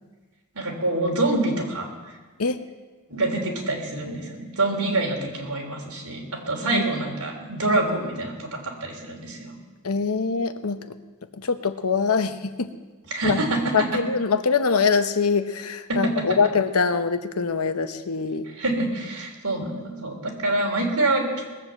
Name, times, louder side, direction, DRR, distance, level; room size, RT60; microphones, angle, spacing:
voice 1, 0.5-2.2 3.1-9.5 13.1-14.0 15.9-16.3 18.4-21.4, right 2 dB, 75° right, 0 dB, 3.4 m, -26 dB
voice 2, 9.8-10.8 11.4-12.7 13.2-13.4 13.7-18.5, left 5 dB, 75° left, 10 dB, 0.9 m, -23 dB
20.0 x 7.7 x 7.6 m, 1.3 s
head